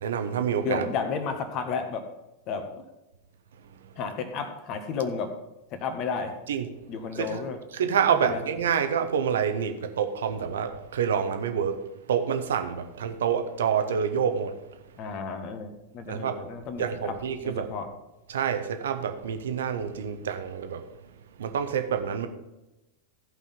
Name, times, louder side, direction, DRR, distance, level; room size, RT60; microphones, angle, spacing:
voice 1, 0.0-0.8 6.5-6.7 7.2-7.4 7.7-11.8 12.1-14.5 16.1-16.3 16.8-17.7 18.3-20.8 21.4-22.3, right 7 dB, 60° right, 8 dB, 1.0 m, -27 dB
voice 2, 0.6-2.1 2.5-2.8 4.0-5.3 5.7-6.3 6.9-8.4 15.0-15.7 15.9-17.9, left 5 dB, 40° left, 7 dB, 1.5 m, -32 dB
15.5 x 5.5 x 5.4 m, 0.99 s
figure-of-eight pair, 90°, 0 cm